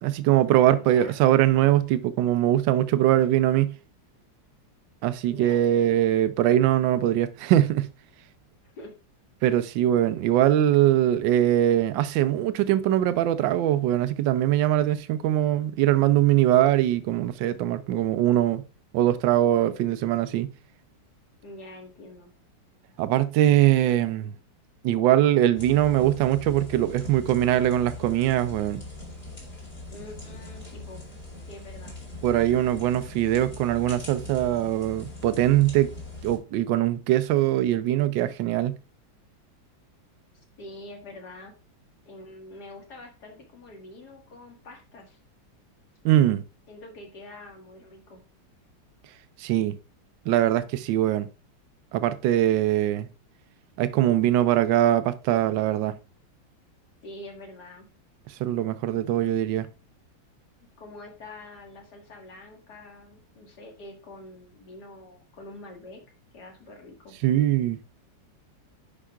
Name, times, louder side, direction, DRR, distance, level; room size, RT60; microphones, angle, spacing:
voice 1, 0.0-3.8 5.0-7.9 9.4-18.6 18.9-20.5 23.0-24.3 24.8-28.8 32.2-35.9 36.2-38.8 46.0-46.4 49.4-49.8 50.3-51.3 51.9-53.1 53.8-55.9 58.3-59.7 67.2-67.8, right 12 dB, 80° right, 1.3 m, -22 dB
voice 2, 0.7-1.2 5.2-6.1 8.6-8.9 21.4-22.3 29.9-31.0 31.5-32.0 40.6-41.5 42.1-45.2 46.7-48.2 57.0-57.9 60.8-66.0 66.3-67.1, left 2 dB, 60° left, 2.1 m, -45 dB
sound 1, 25.5-36.4, left 2 dB, 30° left, 3.0 m, -41 dB
10.0 x 5.5 x 2.3 m
omnidirectional pair, 2.0 m